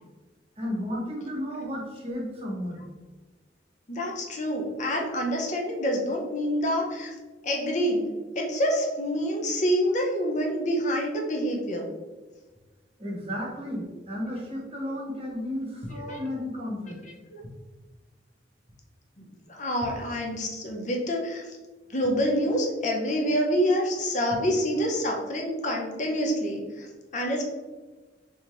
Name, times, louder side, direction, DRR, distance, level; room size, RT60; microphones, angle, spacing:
voice 1, 0.6-2.8 13.0-17.0, left 1 dB, 35° right, -2 dB, 1.1 m, -33 dB
voice 2, 3.9-7.2 7.4-8.1 8.3-11.9 16.0-16.3 17.3-17.4 19.2-21.5 21.9-26.9 27.1-27.4, equal, 45° left, 0 dB, 0.7 m, -27 dB
3.9 x 3.6 x 3.3 m, 1.3 s
head